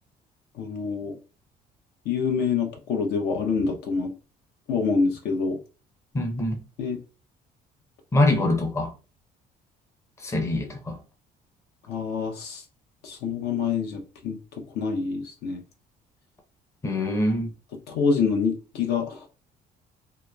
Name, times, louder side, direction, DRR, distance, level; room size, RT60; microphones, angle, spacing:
voice 1, 0.6-1.2 2.1-4.1 4.7-5.6 6.8-7.0 11.9-12.6 13.0-14.4 14.7-15.6 17.9-19.2, left 5 dB, 75° left, 0.7 m, -26 dB
voice 2, 6.1-6.6 8.1-8.9 10.2-11.0 16.8-17.5, left 1 dB, 15° left, 0.5 m, -24 dB
2.9 x 2.1 x 2.2 m
cardioid pair, 110°, 17 cm